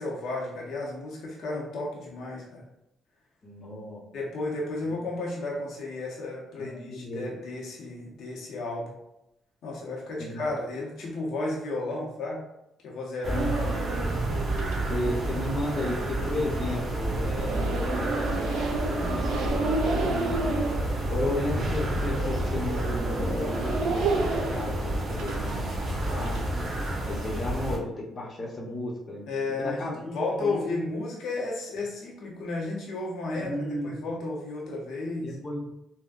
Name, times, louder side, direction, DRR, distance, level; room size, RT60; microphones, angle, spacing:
voice 1, 0.0-2.6 4.1-8.9 9.6-12.5 12.8-14.0 21.1-21.3 29.3-33.6 33.8-35.3, left 2 dB, 70° left, -3 dB, 0.7 m, -33 dB
voice 2, 3.4-4.0 4.8-5.0 6.6-7.3 10.2-10.5 13.3-13.6 14.9-20.6 21.1-26.4 27.0-29.3 29.6-30.6 33.3-33.9 35.2-35.7, left 1 dB, 40° left, -2 dB, 0.9 m, -34 dB
sound 1, 13.2-27.8, right 1 dB, 50° right, 0.9 m, -30 dB
sound 2, 13.4-27.0, right 3 dB, 85° right, 0.5 m, -32 dB
3.6 x 2.1 x 2.5 m, 0.85 s
cardioid pair, 90°, 0 cm